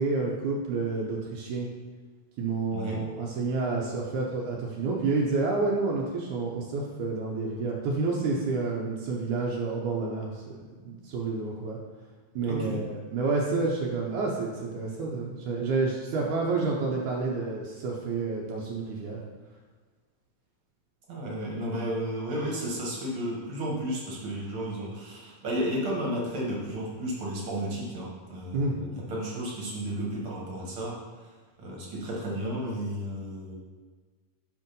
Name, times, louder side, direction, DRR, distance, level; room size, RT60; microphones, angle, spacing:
voice 1, 0.0-1.7 2.4-10.6 10.9-11.8 12.4-19.2 28.5-28.8, right 3 dB, 75° right, -2 dB, 2.2 m, -29 dB
voice 2, 12.5-12.8 21.1-30.9 31.6-33.5, equal, 50° right, -3 dB, 2.2 m, -33 dB
6.4 x 5.5 x 5.2 m, 1.4 s
omnidirectional pair, 3.6 m